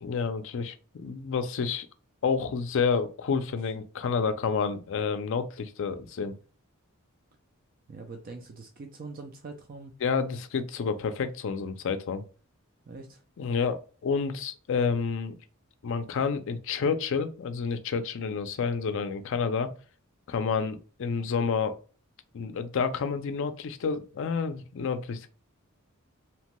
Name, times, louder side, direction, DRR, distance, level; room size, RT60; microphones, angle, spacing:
voice 1, 0.0-1.9 2.2-6.4 10.0-12.2 13.4-15.4 15.8-19.7 20.3-21.8 22.3-25.3, left 5 dB, 60° left, 0.4 m, -29 dB
voice 2, 7.9-9.9 12.9-13.2, right 3 dB, 40° right, 0.4 m, -43 dB
2.8 x 2.1 x 2.9 m
head